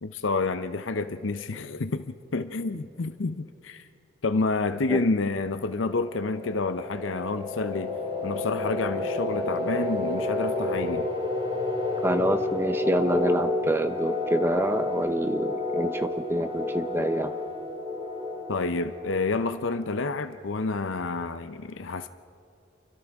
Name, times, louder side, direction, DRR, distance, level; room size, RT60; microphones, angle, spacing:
voice 1, 0.0-3.8 4.2-8.0 8.2-11.1 18.5-22.1, left 3 dB, 80° left, 10 dB, 0.6 m, -29 dB
sound 1, 5.5-20.0, left 2 dB, 35° right, 6.9 m, -31 dB
voice 2, 12.0-17.3, right 1 dB, 10° right, 9 dB, 0.7 m, -27 dB
30.0 x 24.5 x 3.6 m, 2.5 s
head